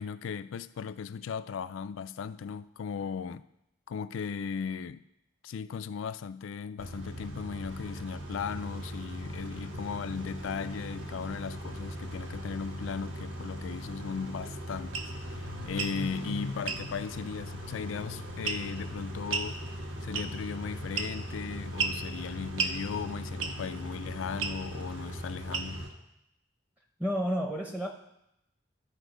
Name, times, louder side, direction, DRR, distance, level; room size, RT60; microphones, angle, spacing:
voice 1, 0.0-3.4 3.9-5.0 5.4-15.0 15.3-19.6 20.0-25.8, left 6 dB, 80° left, 0.4 m, -37 dB
Car / Idling / Accelerating revving vroom, 6.8-25.9, equal, 70° right, 1.2 m, -39 dB
sound 1, 14.9-15.1 15.7-16.0 16.7-16.8 18.5-18.8 19.3-19.5 20.1-20.5 21.0-21.3 21.8-22.0 22.6-22.8 23.4-23.7 24.4-24.6 25.5-25.9, right 5 dB, 90° right, 0.7 m, -32 dB
voice 2, 27.0-27.9, equal, 5° right, 0.6 m, -30 dB
13.0 x 4.4 x 5.0 m
head